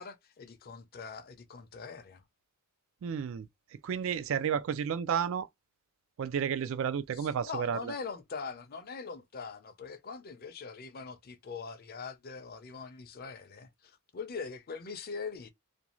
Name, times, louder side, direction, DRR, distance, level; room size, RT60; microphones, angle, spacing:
voice 1, 0.0-2.2 7.1-15.5, left 5 dB, 45° left, 0.5 m, -42 dB
voice 2, 3.0-3.5 3.8-5.5 6.2-7.9, right 7 dB, 60° right, 0.3 m, -31 dB
2.5 x 2.2 x 3.0 m
head